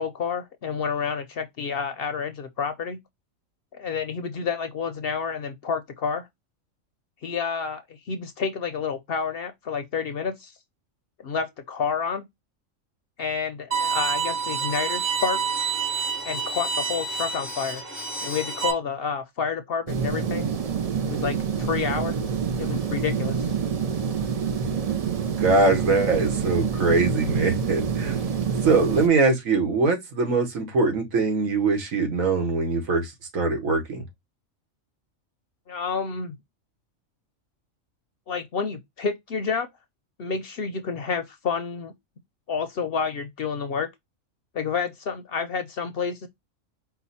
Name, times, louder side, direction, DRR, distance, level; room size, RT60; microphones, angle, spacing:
voice 1, 0.0-3.0 3.7-6.3 7.2-10.5 11.2-12.2 13.2-15.4 16.2-17.8 18.2-20.5 21.1-22.2 22.6-23.5 35.7-36.4 38.3-39.7 40.2-41.9 42.5-43.9 44.5-46.3, left 6 dB, 60° left, 0.7 m, -29 dB
Bowed string instrument, 13.7-18.7, right 5 dB, 45° right, 1.5 m, -28 dB
sound 1, 19.9-29.1, right 6 dB, 65° right, 0.3 m, -27 dB
voice 2, 25.4-28.2 28.6-34.0, right 3 dB, 85° right, 1.6 m, -22 dB
4.8 x 2.2 x 4.0 m
omnidirectional pair, 1.4 m